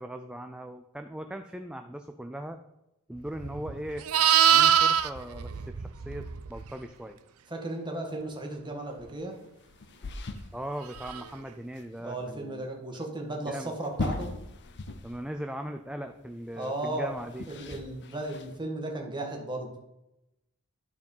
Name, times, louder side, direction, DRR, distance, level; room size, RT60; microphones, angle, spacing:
voice 1, 0.0-2.6 3.1-4.1 4.5-7.2 10.5-13.1 13.5-13.7 15.0-17.5, right 1 dB, 5° right, 6 dB, 0.4 m, -39 dB
Livestock farm animals working animals, 3.4-6.7 11.0-11.3, right 9 dB, 70° right, 0.6 m, -24 dB
voice 2, 7.5-9.4 12.0-14.3 16.5-17.1 17.5-19.7, right 1 dB, 20° right, 1 dB, 1.7 m, -35 dB
sound 1, 9.4-11.4 11.7-11.8 12.2-12.3 13.7-15.4 15.6-15.7 16.6-18.6, left 2 dB, 55° left, 0.7 m, -39 dB
12.0 x 4.7 x 5.5 m, 0.92 s
head